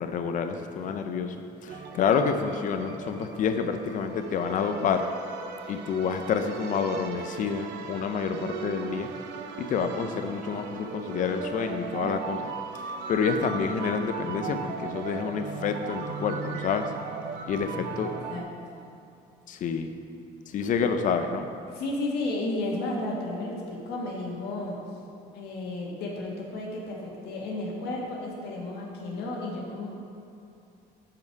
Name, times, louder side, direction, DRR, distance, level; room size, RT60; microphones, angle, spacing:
voice 1, 0.0-1.3 1.6-5.1 5.7-9.1 9.6-12.5 13.1-16.9 17.5-18.1 19.5-19.9 20.5-21.5, left 6 dB, 50° left, 7 dB, 0.5 m, -28 dB
sound 1, 1.7-18.4, right 5 dB, 90° right, 0.6 m, -38 dB
voice 2, 17.8-18.8 21.7-24.8 25.3-29.9, left 2 dB, 75° left, -2 dB, 1.6 m, -33 dB
7.0 x 5.6 x 4.6 m, 2.6 s
cardioid pair, 110°, 17 cm